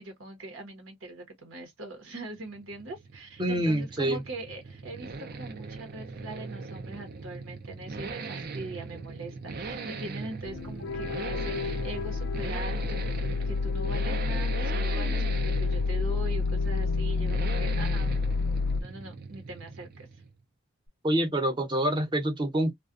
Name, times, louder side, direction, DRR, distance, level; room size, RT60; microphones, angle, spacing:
voice 1, 0.0-18.2 18.7-20.2, right 2 dB, 80° right, 1.0 m, -42 dB
sound 1, 2.4-20.4, right 4 dB, 50° right, 0.5 m, -39 dB
voice 2, 3.4-4.2 21.0-22.7, right 1 dB, 25° right, 0.8 m, -26 dB
sound 2, 10.4-18.8, left 4 dB, 60° left, 0.3 m, -29 dB
2.4 x 2.2 x 2.5 m
head